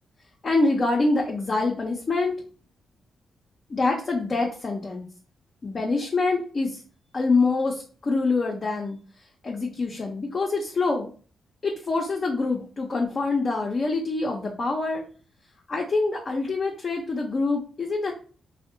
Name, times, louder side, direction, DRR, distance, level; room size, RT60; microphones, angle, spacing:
voice 1, 0.4-2.4 3.7-5.0 5.6-6.8 7.1-9.0 9.4-11.1 11.6-15.0 15.7-18.1, left 3 dB, 45° left, -1 dB, 0.5 m, -25 dB
2.6 x 2.0 x 2.5 m, 0.39 s
cardioid pair, 75°, 0 cm